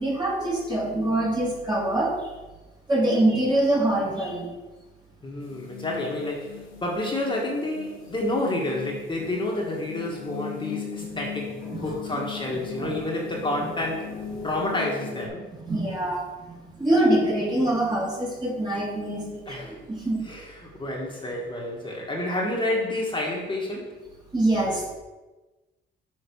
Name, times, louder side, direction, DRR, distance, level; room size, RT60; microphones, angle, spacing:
voice 1, 0.0-2.1 2.9-4.5 11.1-11.2 11.7-11.8 12.1-12.9 15.7-20.3 24.3-24.9, right 1 dB, 20° right, -3 dB, 2.3 m, -25 dB
voice 2, 5.2-14.2 14.4-15.5 19.5-19.8 20.2-23.9, left 1 dB, 25° left, -3 dB, 1.7 m, -29 dB
sound 1, 5.4-15.3, left 7 dB, 85° left, 1.2 m, -38 dB
6.5 x 4.4 x 6.2 m, 1.1 s
cardioid pair, 90°, 20 cm